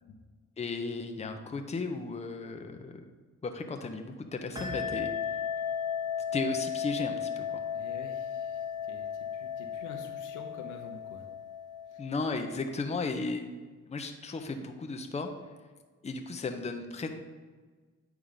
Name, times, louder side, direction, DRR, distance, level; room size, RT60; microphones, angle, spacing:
voice 1, 0.6-3.0 3.4-5.1 6.3-7.6 12.0-13.5 13.9-15.3 16.0-17.1, left 3 dB, 20° left, 5 dB, 0.7 m, -35 dB
sound 1, 4.6-12.7, left 7 dB, 10° right, 1.4 m, -35 dB
voice 2, 7.7-11.3 11.9-12.0, left 5 dB, 80° left, 4 dB, 1.0 m, -48 dB
8.8 x 3.5 x 5.3 m, 1.4 s
cardioid pair, 90°, 30 cm